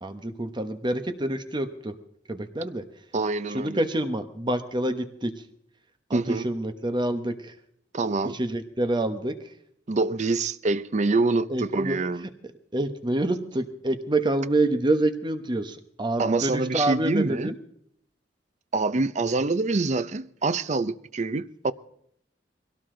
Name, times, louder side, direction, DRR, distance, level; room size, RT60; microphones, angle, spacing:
voice 1, 0.0-2.0 2.3-2.8 3.5-5.3 6.1-7.5 8.3-9.4 11.5-12.0 12.7-17.6, right 1 dB, 25° right, 1.1 m, -27 dB
voice 2, 3.1-3.8 6.1-6.5 7.9-8.4 9.9-12.2 16.2-17.5 18.7-21.7, right 3 dB, 40° right, 0.6 m, -25 dB
22.0 x 17.0 x 3.8 m
head